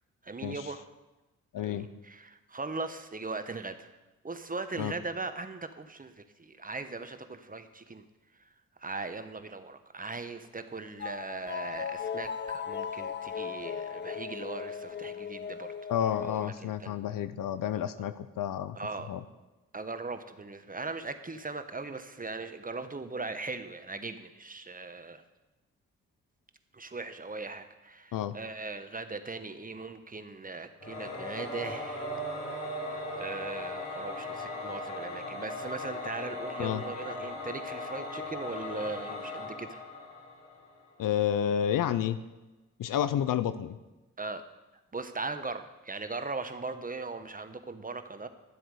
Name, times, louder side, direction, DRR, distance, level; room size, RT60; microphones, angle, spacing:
voice 1, 0.2-0.8 1.6-3.9 4.2-8.0 8.4-8.5 8.8-15.7 16.2-17.0 18.7-19.1 19.7-25.2 26.7-32.1 32.5-32.8 33.2-39.8 44.2-44.4 44.9-48.3, right 3 dB, 25° right, 9 dB, 1.0 m, -39 dB
voice 2, 1.5-1.9 4.8-4.9 15.9-18.8 19.1-19.2 28.1-28.3 36.6-36.8 41.0-42.2 42.8-43.8, left 10 dB, 65° left, 13 dB, 0.7 m, -30 dB
sound 1, 11.0-16.5, left 7 dB, 30° left, 0.8 m, -37 dB
Singing / Musical instrument, 30.8-40.8, left 1 dB, 45° left, 4.0 m, -38 dB
12.0 x 7.7 x 4.9 m, 1.1 s
hypercardioid pair, 45°, 36 cm